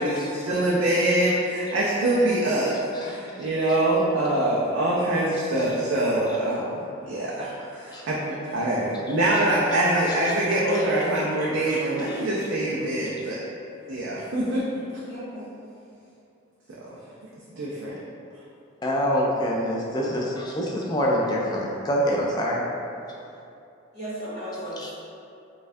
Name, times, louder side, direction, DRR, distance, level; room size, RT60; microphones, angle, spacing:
voice 1, 0.0-2.7 3.0-13.4 13.9-14.7 16.7-16.8 17.5-17.9, right 1 dB, 65° right, -6 dB, 0.4 m, -24 dB
voice 2, 15.1-15.4 21.2-21.4 23.9-24.9, equal, 30° right, -13 dB, 0.8 m, -35 dB
voice 3, 18.8-22.6, equal, 20° left, -3 dB, 0.3 m, -25 dB
4.1 x 2.3 x 2.6 m, 2.7 s
head